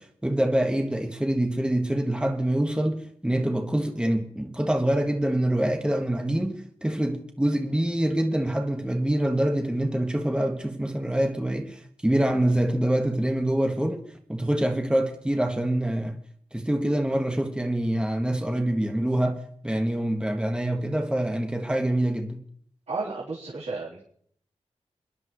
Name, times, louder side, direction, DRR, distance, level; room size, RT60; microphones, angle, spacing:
voice 1, 0.0-14.0 14.3-16.2 16.5-22.4, right 1 dB, 10° right, 1.5 m, -25 dB
voice 2, 22.9-24.0, right 3 dB, 75° right, 3.7 m, -32 dB
28.5 x 10.5 x 3.2 m
cardioid pair, 65°, 11 cm